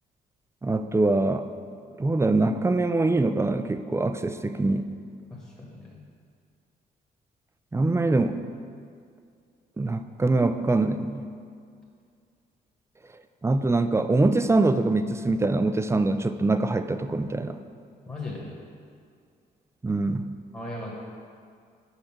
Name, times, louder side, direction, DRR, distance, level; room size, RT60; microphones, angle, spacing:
voice 1, 0.6-1.5 2.0-4.9 7.7-8.4 9.8-11.3 13.4-17.6 19.8-20.3, right 2 dB, 15° right, 9 dB, 0.4 m, -24 dB
voice 2, 5.3-6.0 18.1-18.5 20.5-20.9, left 2 dB, 15° left, -3 dB, 1.4 m, -37 dB
5.5 x 5.0 x 5.8 m, 2.3 s
supercardioid pair, 70°, 19 cm